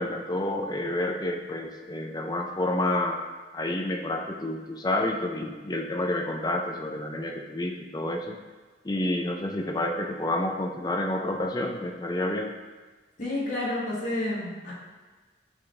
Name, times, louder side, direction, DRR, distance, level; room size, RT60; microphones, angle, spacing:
voice 1, 0.0-3.2 3.5-8.4 8.8-12.5, left 1 dB, 20° left, 3 dB, 0.5 m, -29 dB
voice 2, 13.2-14.7, left 1 dB, 40° left, -6 dB, 1.4 m, -30 dB
6.1 x 6.0 x 3.3 m, 1.3 s
head